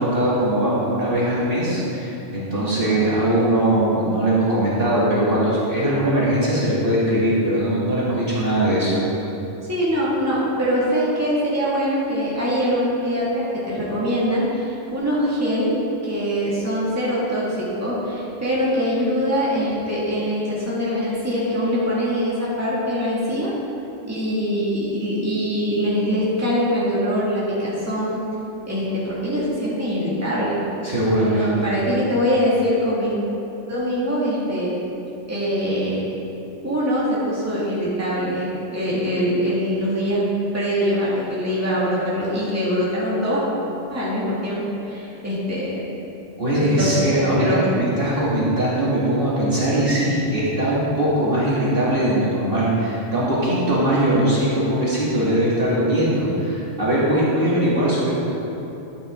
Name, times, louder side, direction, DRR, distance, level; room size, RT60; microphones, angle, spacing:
voice 1, 0.0-9.0 30.8-31.5 46.4-58.1, right 1 dB, 45° right, -9 dB, 2.5 m, -20 dB
voice 2, 9.7-15.7 16.0-23.5 24.1-28.2 28.7-30.6 31.3-33.2 33.7-34.7 35.3-36.0 36.6-40.2 40.5-43.4 43.9-45.9 46.6-47.0 47.4-47.6, equal, 10° right, -9 dB, 2.2 m, -23 dB
12.0 x 8.4 x 3.8 m, 3.0 s
omnidirectional pair, 1.3 m